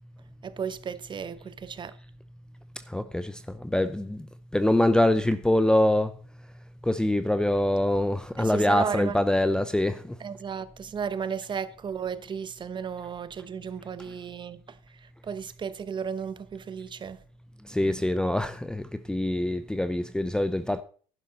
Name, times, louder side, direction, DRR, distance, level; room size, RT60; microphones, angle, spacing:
voice 1, 0.4-2.0 8.4-9.2 10.2-17.2, right 6 dB, 30° right, 0.9 m, -34 dB
voice 2, 2.9-3.3 3.6-4.2 4.5-6.1 6.8-10.0 17.7-20.8, left 1 dB, 5° left, 0.6 m, -24 dB
11.0 x 11.0 x 4.0 m
hypercardioid pair, 80°, 16 cm